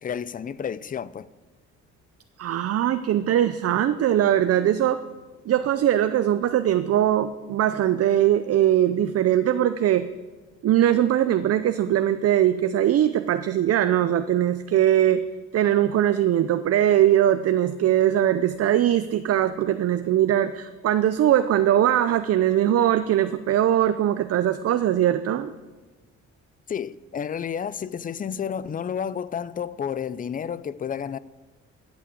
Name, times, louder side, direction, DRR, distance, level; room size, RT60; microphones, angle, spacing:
voice 1, 0.0-1.3 26.7-31.2, left 7 dB, 30° left, 0.4 m, -31 dB
voice 2, 2.4-5.0 5.5-10.1 10.6-15.2 15.5-25.5, right 11 dB, 55° right, 0.5 m, -21 dB
13.5 x 6.1 x 8.3 m
cardioid pair, 90°, 30 cm